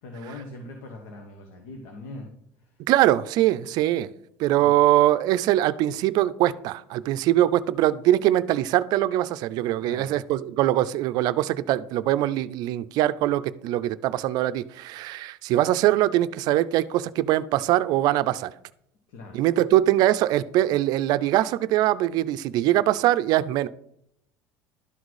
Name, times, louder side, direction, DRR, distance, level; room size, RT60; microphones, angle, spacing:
voice 1, 0.0-2.8 4.6-4.7 9.8-10.2 19.1-19.4, left 2 dB, 80° left, 1.4 m, -41 dB
voice 2, 2.9-4.1 4.4-18.5 19.3-23.7, right 14 dB, 60° right, 0.4 m, -22 dB
12.0 x 4.1 x 4.8 m
supercardioid pair, 110°, 8 cm